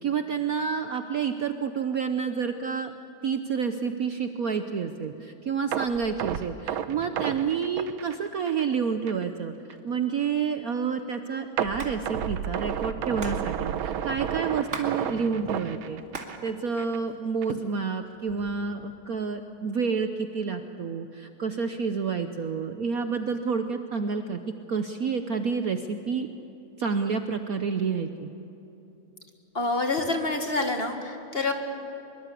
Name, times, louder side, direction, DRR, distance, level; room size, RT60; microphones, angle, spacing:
voice 1, 0.0-2.9 3.2-9.5 9.8-16.0 16.4-24.4 24.7-26.3 26.8-28.3, right 6 dB, 55° right, 7 dB, 1.1 m, -29 dB
sound 1, 5.7-8.8 9.1-9.2 9.7-9.8 11.6-16.5 16.8-17.0 17.4-17.5, right 9 dB, 90° right, 1.7 m, -31 dB
Hands, 11.8-12.0 12.2-12.3 12.5-14.9 15.2-16.4 16.8-17.5 18.1-18.7, right 3 dB, 40° right, 2.6 m, -39 dB
voice 2, 29.5-31.5, left 2 dB, 30° left, 4 dB, 1.8 m, -27 dB
24.0 x 23.0 x 8.4 m, 3.0 s
omnidirectional pair, 2.2 m